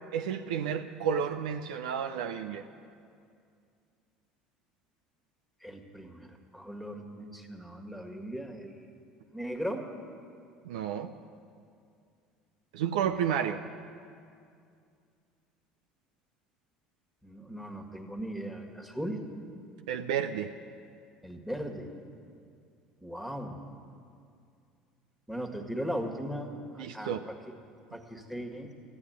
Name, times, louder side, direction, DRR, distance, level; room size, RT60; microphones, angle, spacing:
voice 1, 0.1-2.7 10.6-11.1 12.7-13.6 19.9-20.5 26.8-27.2, right 8 dB, 75° right, 6 dB, 0.5 m, -31 dB
voice 2, 5.6-8.9 9.3-9.9 12.9-13.1 17.2-19.2 21.2-21.9 23.0-23.6 25.3-27.4 27.9-28.7, equal, ahead, 4 dB, 1.9 m, -38 dB
14.5 x 9.7 x 9.3 m, 2.4 s
hypercardioid pair, 70°, 4 cm